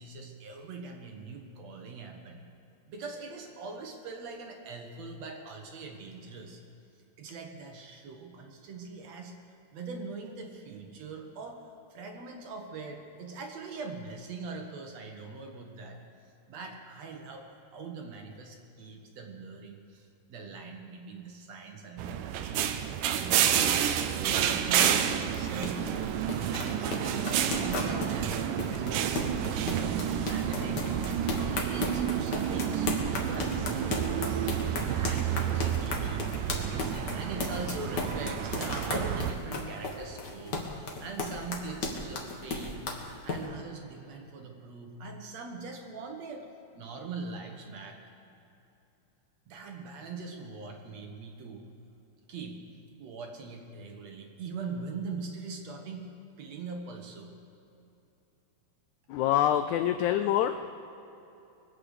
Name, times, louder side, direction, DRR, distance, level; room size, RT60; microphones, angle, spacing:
voice 1, 0.0-2.4 2.9-6.6 7.2-9.3 9.7-11.6 11.9-16.0 16.5-22.7 23.1-25.9 26.6-31.3 31.6-34.2 34.9-36.3 36.7-43.0 43.2-46.5 46.8-48.0 49.5-51.6 52.3-52.6 53.0-56.1 56.4-57.4, right 4 dB, 60° right, 3 dB, 2.2 m, -42 dB
sound 1, 22.0-39.3, right 9 dB, 75° right, 2.1 m, -30 dB
sound 2, 24.3-43.4, left 3 dB, 45° left, 1.6 m, -35 dB
voice 2, 59.1-60.7, left 11 dB, 85° left, 9 dB, 1.7 m, -26 dB
22.0 x 8.7 x 6.5 m, 2.9 s
omnidirectional pair, 3.9 m